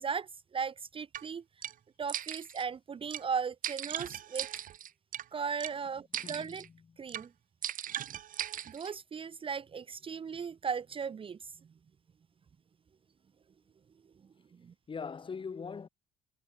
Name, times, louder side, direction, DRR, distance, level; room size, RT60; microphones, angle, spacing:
voice 1, 0.0-1.4 2.0-4.5 5.3-6.6 7.0-7.3 8.7-11.4 14.6-14.7, right 6 dB, 30° right, 1.0 m, -37 dB
sound 1, 1.1-1.2 1.6-1.7 2.1-2.7 3.1-3.2 3.6-5.2 5.6-5.7 6.1-6.7 7.1-7.3 7.6-8.9, right 11 dB, 55° right, 1.3 m, -38 dB
voice 2, 5.8-7.0 14.9-15.9, left 5 dB, 30° left, 2.7 m, -42 dB
cardioid pair, 110°, 17 cm